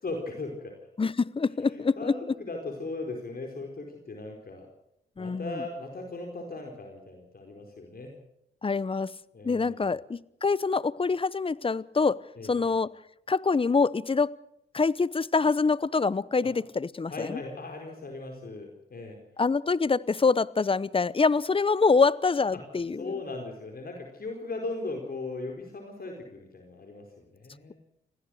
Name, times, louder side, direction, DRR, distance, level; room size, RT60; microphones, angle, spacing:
voice 1, 0.0-0.8 1.7-4.7 5.2-8.2 9.3-9.9 12.4-12.8 16.4-16.5 17.1-19.2 22.5-22.6 22.9-27.7, left 2 dB, 50° left, 4.5 m, -38 dB
voice 2, 1.0-2.1 5.2-5.5 8.6-9.1 9.4-12.9 13.3-14.3 14.7-17.4 19.4-23.1, left 4 dB, 25° left, 0.8 m, -25 dB
26.5 x 16.5 x 6.4 m
cardioid pair, 60°, 20 cm